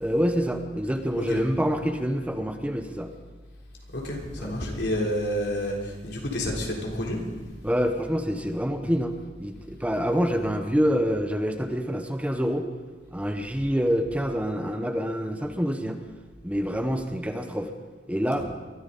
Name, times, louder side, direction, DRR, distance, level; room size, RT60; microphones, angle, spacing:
voice 1, 0.0-3.1 4.4-4.5 7.6-9.1 9.4-12.7 13.1-16.0 16.4-17.7 18.1-18.4, equal, 10° right, 6 dB, 0.9 m, -26 dB
voice 2, 3.9-7.2, equal, 75° left, -1 dB, 3.7 m, -29 dB
22.5 x 13.5 x 4.1 m, 1.4 s
head